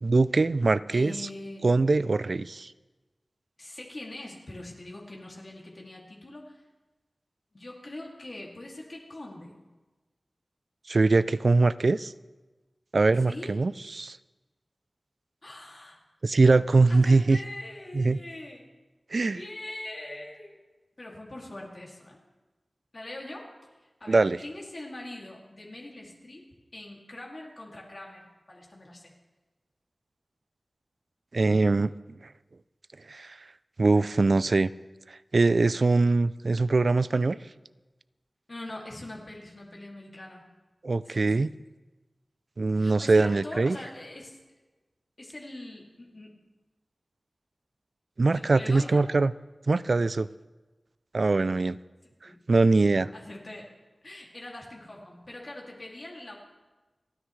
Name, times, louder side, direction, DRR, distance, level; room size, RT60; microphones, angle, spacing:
voice 1, 0.0-1.2 1.6-2.7 10.9-12.1 12.9-14.2 16.2-17.4 17.9-18.2 19.1-19.4 24.1-24.4 31.3-31.9 33.1-33.4 33.8-34.7 35.3-37.4 40.8-41.5 42.6-43.8 48.2-49.3 49.7-50.3 51.1-51.8 52.5-53.1, right 3 dB, 65° right, 17 dB, 0.3 m, -22 dB
voice 2, 0.9-1.7 3.6-6.6 7.5-9.6 13.2-13.6 15.4-16.0 16.9-18.7 19.3-20.6 21.0-22.2 22.9-23.5 24.0-26.4 26.7-29.1 38.5-40.5 41.0-41.5 42.7-44.4 45.2-46.4 48.3-49.0 52.2-52.4 53.1-53.7 54.0-56.4, left 1 dB, 50° left, -2 dB, 2.4 m, -42 dB
29.0 x 9.8 x 3.2 m, 1.2 s
wide cardioid pair, 80°, 0 cm